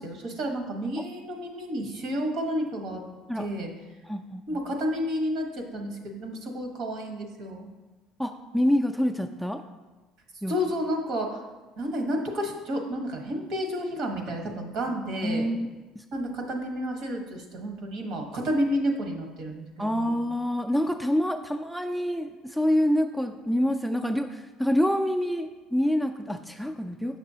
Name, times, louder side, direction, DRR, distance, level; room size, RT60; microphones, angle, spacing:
voice 1, 0.0-3.0 3.3-3.7 4.5-7.7 10.5-11.4 11.8-15.5 16.1-20.2, equal, 65° right, 3 dB, 1.2 m, -31 dB
voice 2, 4.1-4.4 8.2-9.6 10.4-10.6 15.2-15.7 19.8-27.2, equal, ahead, 6 dB, 0.3 m, -26 dB
6.6 x 6.1 x 2.8 m, 1.2 s
supercardioid pair, 105°, 0 cm